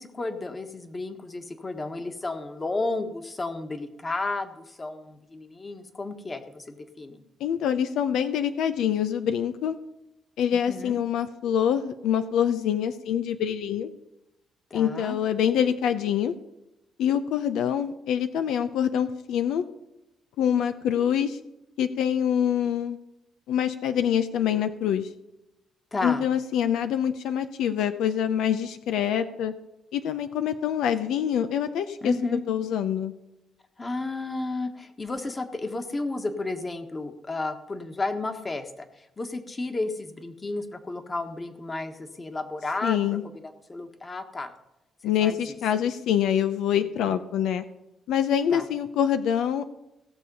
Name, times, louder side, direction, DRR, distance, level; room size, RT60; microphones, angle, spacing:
voice 1, 0.0-7.2 10.6-11.0 14.7-15.2 25.9-26.2 32.0-32.4 33.8-43.0 43.3-44.5 45.2-45.4 47.0-47.2 48.5-48.6, left 2 dB, 25° left, 7 dB, 1.6 m, -32 dB
voice 2, 7.4-9.7 10.4-13.9 14.7-16.3 17.0-19.6 20.4-21.4 21.8-23.0 23.5-25.1 26.0-29.5 29.9-32.1 32.5-33.1 42.8-43.2 45.0-47.6 48.1-49.6, left 9 dB, 85° left, 10 dB, 0.7 m, -25 dB
17.0 x 6.7 x 5.5 m, 0.92 s
cardioid pair, 90°, 0 cm